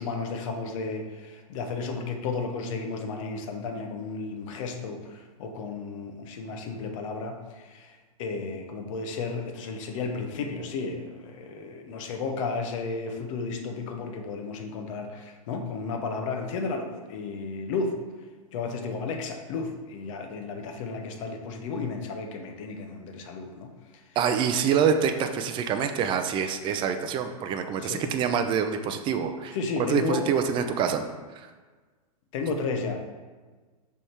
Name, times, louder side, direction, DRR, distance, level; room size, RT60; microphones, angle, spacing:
voice 1, 0.0-17.9 18.5-23.7 27.8-28.0 29.5-30.3 32.3-33.0, left 4 dB, 55° left, 4 dB, 0.9 m, -33 dB
voice 2, 24.2-29.6 29.9-31.0 31.4-31.5, right 7 dB, 25° right, 7 dB, 0.5 m, -26 dB
6.2 x 3.5 x 4.4 m, 1.4 s
hypercardioid pair, 120°, 20 cm